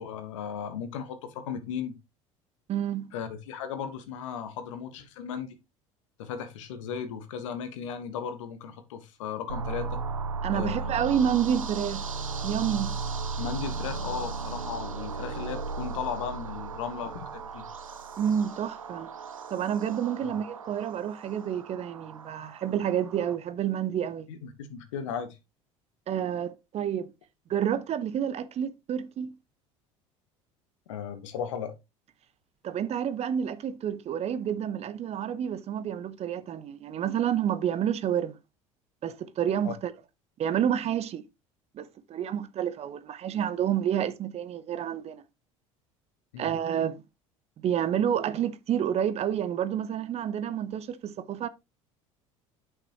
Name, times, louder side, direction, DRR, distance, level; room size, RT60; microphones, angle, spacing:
voice 1, 0.0-2.0 3.1-5.5 6.2-10.0 10.5-10.9 13.4-17.7 20.2-20.3 24.3-25.4 30.9-31.7 39.6-39.7 46.3-46.5, left 7 dB, 70° left, 1.3 m, -36 dB
voice 2, 2.7-3.1 10.4-12.1 12.4-13.0 18.2-19.1 19.5-24.3 26.1-27.1 27.5-29.3 32.6-38.4 39.0-39.9 40.4-41.2 41.7-45.2 46.4-47.0 47.6-51.5, right 9 dB, 40° right, 0.8 m, -29 dB
sound 1, 9.5-23.4, right 4 dB, 85° right, 0.7 m, -36 dB
9.9 x 6.0 x 2.9 m
figure-of-eight pair, 65°, 17 cm